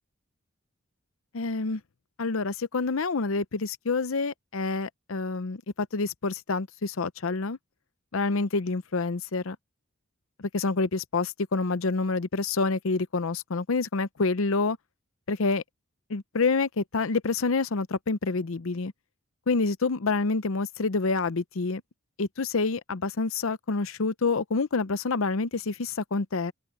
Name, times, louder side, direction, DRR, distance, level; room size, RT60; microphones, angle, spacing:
voice 1, 1.3-1.8 2.2-7.6 8.1-9.6 10.4-14.8 15.3-15.6 16.1-18.9 19.5-21.8 22.2-26.5, left 3 dB, 70° left, 0.7 m, -27 dB
open air
head